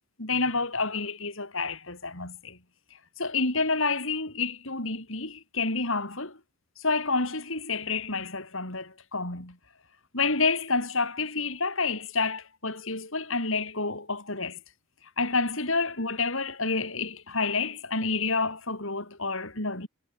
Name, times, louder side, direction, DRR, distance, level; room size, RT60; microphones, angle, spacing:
voice 1, 0.2-2.6 3.2-6.4 6.8-9.6 10.1-14.6 15.2-19.9, left 3 dB, 65° left, 5.8 m, -29 dB
head